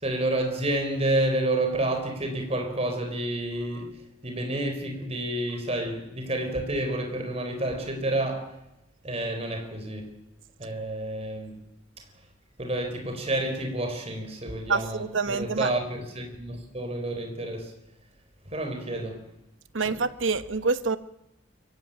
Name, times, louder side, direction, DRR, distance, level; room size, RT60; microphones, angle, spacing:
voice 1, 0.0-8.5 9.0-10.1 10.6-11.6 12.6-17.7 18.5-19.3 19.8-20.0, right 1 dB, 30° right, 4.2 m, -29 dB
voice 2, 14.7-15.7 19.7-21.0, right 4 dB, 80° right, 1.1 m, -26 dB
23.5 x 16.0 x 8.9 m
head